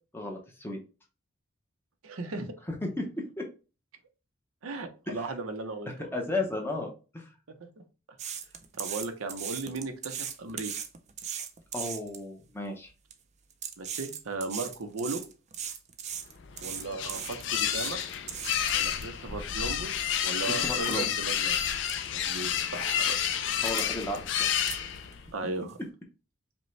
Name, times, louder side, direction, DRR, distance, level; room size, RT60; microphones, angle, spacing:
voice 1, 0.1-0.8 2.8-3.0 3.4-3.5 5.1-5.3 5.9-7.3 11.7-12.9 20.4-21.1 23.6-24.2, left 2 dB, 10° left, 1 dB, 0.7 m, -34 dB
voice 2, 2.0-2.5 4.6-6.1 7.6-7.7 8.8-10.7 13.8-15.2 16.6-18.0 18.7-21.6 22.1-23.4 25.3-25.8, right 3 dB, 80° right, 6 dB, 0.7 m, -36 dB
sound 1, 8.2-12.2 12.9-13.1 13.5-19.0 19.5-19.6 20.1-20.2 20.6-21.0 21.5-21.6 21.8-22.1 22.3-22.9 23.5-23.9 24.1-25.3 25.7-25.8, right 8 dB, 30° right, 0.4 m, -38 dB
sound 2, 16.4-25.3, left 9 dB, 55° left, 0.4 m, -30 dB
5.2 x 2.2 x 3.1 m, 0.33 s
head